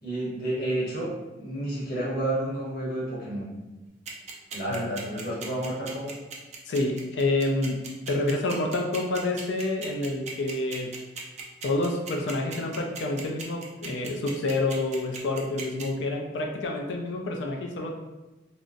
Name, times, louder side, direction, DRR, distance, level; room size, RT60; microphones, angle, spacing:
voice 1, 0.0-3.5 4.5-6.1, right 1 dB, 60° left, -7 dB, 1.0 m, -30 dB
sound 1, 4.1-15.8, right 5 dB, 40° right, 0.5 m, -38 dB
voice 2, 6.7-10.9 11.6-17.9, left 2 dB, 75° left, 1 dB, 0.4 m, -28 dB
3.7 x 2.0 x 2.5 m, 1.1 s
head